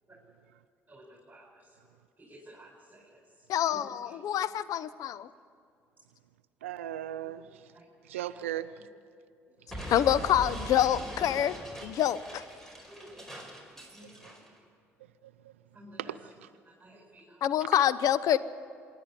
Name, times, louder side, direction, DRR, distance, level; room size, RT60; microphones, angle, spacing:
voice 1, 2.3-3.0 7.7-7.9 12.9-13.1 14.0-14.1 15.7-16.0 16.8-17.4, right 1 dB, 20° right, -2 dB, 5.0 m, -52 dB
voice 2, 3.5-5.3 9.9-11.5 11.8-12.4 17.4-18.4, left 11 dB, 60° left, 15 dB, 0.7 m, -26 dB
voice 3, 6.6-7.4 8.0-8.7 14.2-14.3 15.4-15.5 16.0-16.5, right 12 dB, 90° right, 13 dB, 0.4 m, -37 dB
Explosion, 9.7-14.5, right 1 dB, 5° left, 4.5 m, -41 dB
25.5 x 11.0 x 9.7 m, 2.3 s
hypercardioid pair, 55°, 7 cm